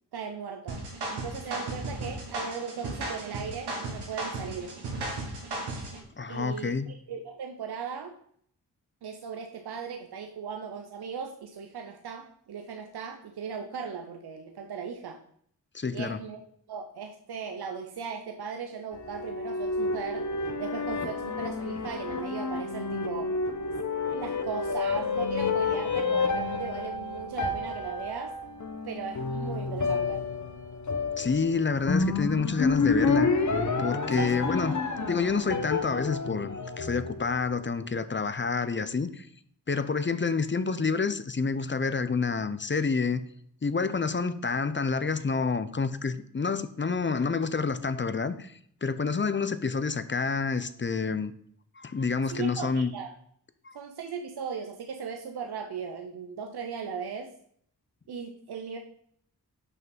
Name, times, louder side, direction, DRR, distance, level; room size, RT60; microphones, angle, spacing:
voice 1, 0.1-0.8 1.1-4.7 6.3-8.1 9.0-15.2 15.9-16.4 16.7-20.3 20.6-23.3 24.1-28.4 28.8-30.3 34.1-35.0 52.3-53.1 53.7-57.3 58.1-58.8, right 6 dB, 75° right, 0.9 m, -38 dB
sound 1, 0.7-6.0, right 2 dB, 90° right, 1.8 m, -35 dB
voice 2, 6.2-6.9 15.7-16.2 31.2-33.3 33.8-34.7 35.1-39.3 39.7-43.2 43.6-48.5 48.8-51.3 51.8-52.9 53.6-53.8, left 4 dB, 30° left, 0.7 m, -28 dB
sound 2, 18.9-37.5, left 4 dB, 45° left, 1.2 m, -30 dB
6.0 x 5.8 x 5.4 m
cardioid pair, 40°, 39 cm